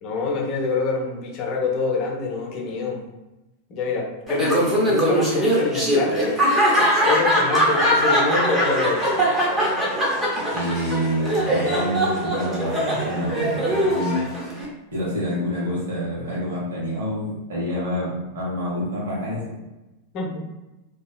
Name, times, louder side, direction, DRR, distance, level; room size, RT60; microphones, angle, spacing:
voice 1, 0.0-3.0 3.7-6.4 7.0-9.2 20.1-20.4, left 3 dB, 40° left, 0 dB, 0.6 m, -26 dB
Laughter, 4.3-14.7, equal, 15° right, 0.7 m, -21 dB
voice 2, 10.5-14.3 14.9-19.4, equal, 60° right, -5 dB, 1.1 m, -27 dB
2.7 x 2.3 x 2.3 m, 1.0 s
figure-of-eight pair, 90°, 0 cm